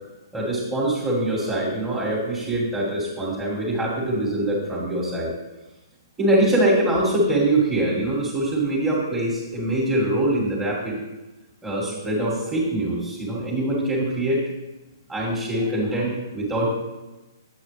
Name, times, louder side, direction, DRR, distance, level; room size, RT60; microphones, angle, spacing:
voice 1, 0.3-5.3 6.2-11.0 11.6-14.4 15.1-16.7, right 1 dB, 10° right, -8 dB, 2.6 m, -23 dB
8.6 x 8.5 x 3.6 m, 1.1 s
hypercardioid pair, 130°, 2 cm